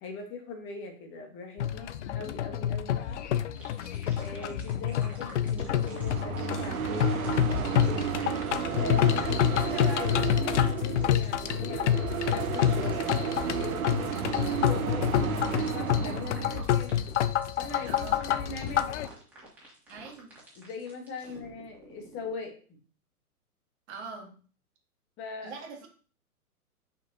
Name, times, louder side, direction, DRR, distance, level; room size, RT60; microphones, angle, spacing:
voice 1, 0.0-3.2 4.2-8.1 8.7-14.1 14.5-17.0 17.6-19.1 20.5-22.6 25.2-25.6, left 3 dB, 25° left, 3 dB, 1.4 m, -41 dB
sound 1, 1.6-19.1, left 10 dB, 50° left, 0.5 m, -28 dB
sound 2, 3.6-22.3, right 1 dB, 5° right, 2.5 m, -48 dB
sound 3, 5.6-16.7, right 9 dB, 65° right, 0.8 m, -33 dB
voice 2, 17.9-18.2 19.9-20.3 21.3-21.4 23.9-24.3 25.4-25.9, right 4 dB, 45° right, 1 dB, 1.8 m, -42 dB
6.6 x 5.5 x 2.9 m, 0.41 s
figure-of-eight pair, 115°, 45 cm